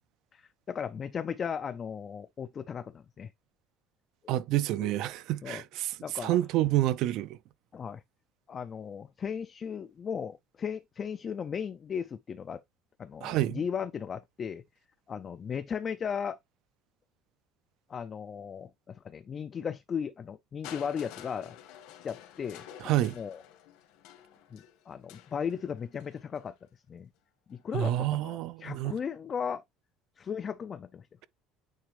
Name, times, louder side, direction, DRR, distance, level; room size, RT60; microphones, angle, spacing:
voice 1, 0.3-3.3 4.8-4.9 5.4-5.6 6.0-6.4 7.7-8.0 8.5-12.6 13.0-14.6 15.1-16.4 17.9-21.6 22.0-22.6 23.1-23.4 24.5-26.5 26.9-27.1 27.5-29.6 30.2-31.1, left 7 dB, 25° left, 0.4 m, -36 dB
voice 2, 4.3-7.4 13.2-13.6 22.8-23.2 27.7-28.9, right 14 dB, 55° right, 0.5 m, -28 dB
Crushing, 20.6-26.5 27.5-27.6, left 10 dB, 70° left, 1.7 m, -50 dB
9.1 x 3.4 x 3.2 m
cardioid pair, 165°, 0 cm